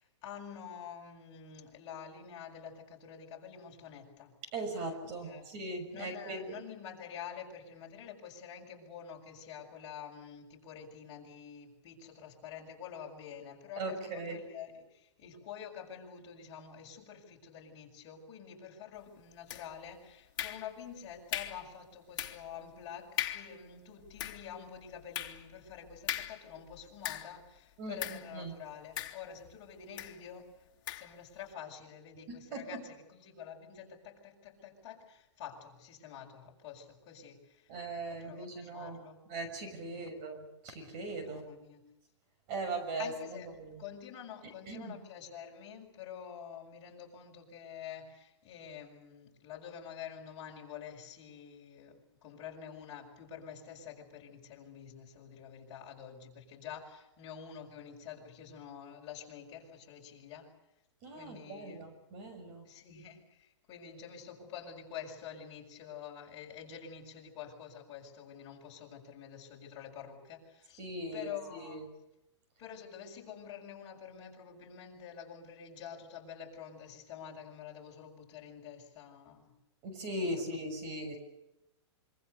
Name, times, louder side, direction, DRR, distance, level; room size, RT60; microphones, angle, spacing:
voice 1, 0.0-4.3 5.1-5.5 5.9-30.7 31.0-37.7 38.1-39.2 39.9-40.2 41.2-41.9 43.0-60.5 61.1-61.9 62.6-70.9 71.1-71.9 72.6-79.5 80.2-80.3 80.7-80.8, left 8 dB, 30° left, -1 dB, 6.9 m, -48 dB
voice 2, 4.5-6.6 13.8-14.4 27.8-28.6 32.3-32.8 37.7-39.0 39.3-41.4 42.5-43.8 44.7-45.0 61.0-62.6 70.8-71.8 79.8-81.2, right 2 dB, 35° right, 6 dB, 6.5 m, -39 dB
sound 1, 19.5-19.9 20.4-20.9 21.3-21.7 22.2-22.5 22.8-22.9 23.2-23.6 24.0-27.5 28.0-28.3 29.0-29.5 30.0-30.2 30.9-31.1, left 12 dB, 45° left, 2.8 m, -39 dB
26.5 x 25.0 x 6.9 m, 0.91 s
hypercardioid pair, 155°, 15 cm